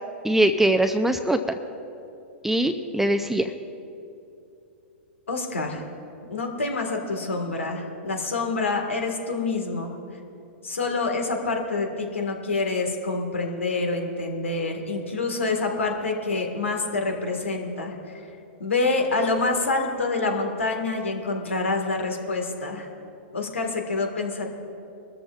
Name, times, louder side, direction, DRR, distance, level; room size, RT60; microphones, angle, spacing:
voice 1, 0.2-1.6 2.4-3.5, right 1 dB, 5° right, 6 dB, 0.5 m, -22 dB
voice 2, 5.3-5.8 6.2-10.2 10.6-18.2 18.6-22.9 23.3-24.6, left 3 dB, 90° left, 3 dB, 1.8 m, -27 dB
22.5 x 13.5 x 2.5 m, 2.7 s
hypercardioid pair, 110°, 7 cm